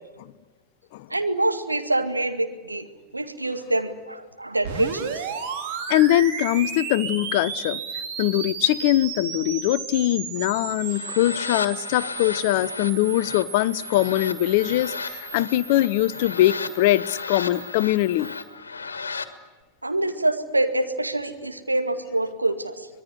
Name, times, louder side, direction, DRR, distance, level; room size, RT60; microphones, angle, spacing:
voice 1, 1.1-2.9 3.1-5.3 19.8-22.9, right 2 dB, 85° right, 2.1 m, -25 dB
sound 1, 4.6-18.5, right 7 dB, 50° right, 3.2 m, -35 dB
voice 2, 5.9-7.8 8.2-18.3, left 15 dB, 50° left, 0.8 m, -22 dB
sound 2, 10.8-19.3, left 4 dB, 75° left, 1.8 m, -35 dB
25.0 x 20.5 x 9.8 m
figure-of-eight pair, 90°, 0 cm